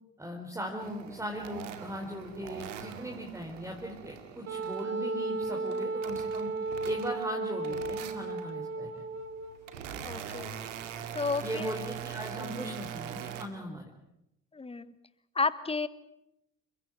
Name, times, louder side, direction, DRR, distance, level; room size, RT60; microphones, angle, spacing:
voice 1, 0.2-6.5 6.8-9.0 11.4-13.8, equal, 10° right, 1 dB, 4.2 m, -39 dB
sound 1, 0.8-4.9 5.3-7.3 7.6-8.5 9.2-13.5, right 8 dB, 70° right, 2.3 m, -42 dB
Wind instrument woodwind instrument, 4.5-9.6, right 3 dB, 40° right, 3.2 m, -34 dB
voice 2, 10.0-10.5 11.1-11.7 12.4-12.8 14.5-14.9 15.3-15.9, left 4 dB, 15° left, 16 dB, 1.4 m, -32 dB
29.5 x 16.0 x 9.1 m, 0.84 s
figure-of-eight pair, 55°, 38 cm